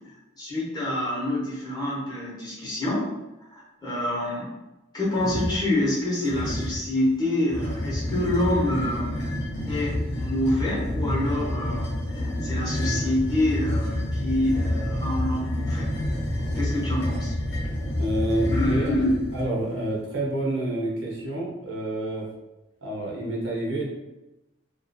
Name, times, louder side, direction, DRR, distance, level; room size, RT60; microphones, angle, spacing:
voice 1, 0.4-3.1 3.5-4.5 4.9-9.2 9.6-15.9 16.5-17.3 18.4-19.1, left 1 dB, 20° left, -7 dB, 0.8 m, -27 dB
sound 1, 5.1-5.6 6.2-6.9 7.5-19.5, left 1 dB, 60° left, 0.8 m, -28 dB
voice 2, 18.0-18.9 19.3-22.3 22.8-23.9, right 1 dB, 85° right, -3 dB, 0.8 m, -28 dB
2.4 x 2.4 x 2.6 m, 1.0 s
head